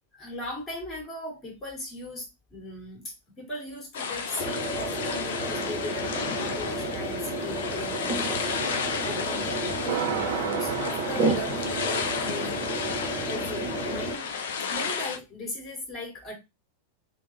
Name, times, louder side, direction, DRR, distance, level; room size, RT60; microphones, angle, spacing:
voice 1, 0.2-14.3 14.7-16.3, left 2 dB, 20° left, 0 dB, 1.8 m, -39 dB
sound 1, 3.9-15.2, left 6 dB, 60° left, 0.5 m, -32 dB
sound 2, 4.4-14.2, right 2 dB, 25° right, 0.8 m, -32 dB
sound 3, 9.9-13.3, right 11 dB, 55° right, 0.3 m, -34 dB
3.4 x 2.0 x 3.1 m, 0.24 s
figure-of-eight pair, 90°, 0 cm